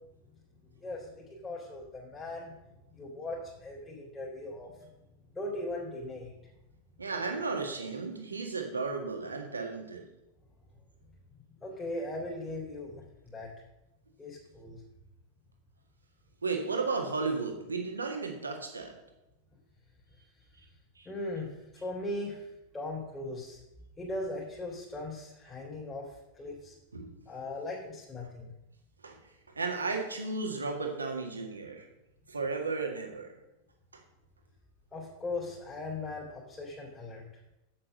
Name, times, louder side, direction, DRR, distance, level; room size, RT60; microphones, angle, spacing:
voice 1, 0.8-2.6 2.9-4.9 5.3-6.3 11.6-13.5 14.2-14.8 21.0-23.6 24.0-26.7 27.2-28.5 34.9-37.2, left 2 dB, 15° left, -4 dB, 3.3 m, -39 dB
voice 2, 7.0-10.0 16.4-18.9 21.0-21.1 26.9-27.2 29.0-29.2 29.6-31.9 32.3-33.3 33.9-34.0, right 4 dB, 75° right, 3 dB, 1.9 m, -34 dB
8.8 x 7.7 x 6.5 m, 0.94 s
figure-of-eight pair, 90°, 0 cm